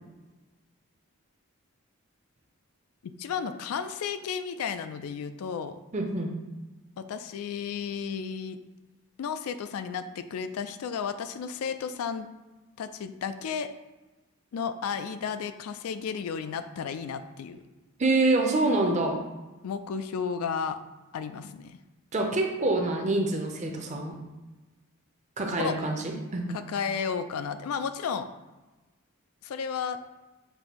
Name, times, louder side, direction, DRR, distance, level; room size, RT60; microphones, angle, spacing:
voice 1, 3.0-5.8 7.0-8.6 9.2-12.3 12.8-13.7 14.5-17.6 19.6-20.8 21.1-21.8 25.6-25.7 26.5-28.3 29.4-30.0, left 6 dB, 80° left, 11 dB, 0.3 m, -33 dB
voice 2, 5.9-6.3 18.0-19.2 22.1-24.2 25.4-26.6, right 2 dB, 30° right, 2 dB, 0.5 m, -26 dB
6.7 x 2.6 x 2.9 m, 1.2 s
head